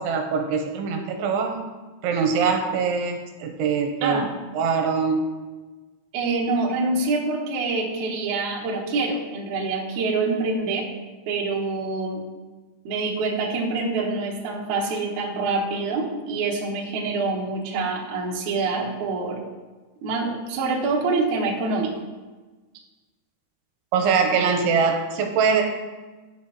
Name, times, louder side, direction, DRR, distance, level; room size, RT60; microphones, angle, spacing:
voice 1, 0.0-1.7 2.0-4.2 4.5-5.2 23.9-25.6, right 5 dB, 85° right, 3 dB, 2.6 m, -23 dB
voice 2, 4.0-4.3 6.1-10.9 11.3-12.2 12.9-19.4 20.0-21.9, right 3 dB, 70° right, -1 dB, 1.9 m, -26 dB
7.8 x 7.6 x 2.9 m, 1.3 s
omnidirectional pair, 4.7 m